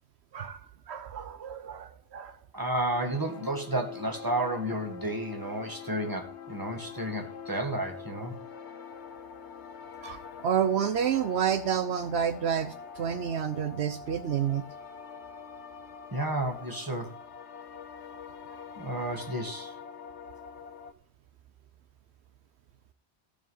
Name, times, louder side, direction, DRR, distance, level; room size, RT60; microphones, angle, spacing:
voice 1, 0.3-2.4 10.0-14.7, right 8 dB, 75° right, 1.0 m, -29 dB
voice 2, 2.5-8.4 16.1-17.2 18.8-19.7, right 1 dB, 20° right, 1.9 m, -32 dB
sound 1, 2.9-20.9, left 6 dB, 75° left, 1.2 m, -45 dB
14.5 x 4.9 x 5.6 m
omnidirectional pair, 1.1 m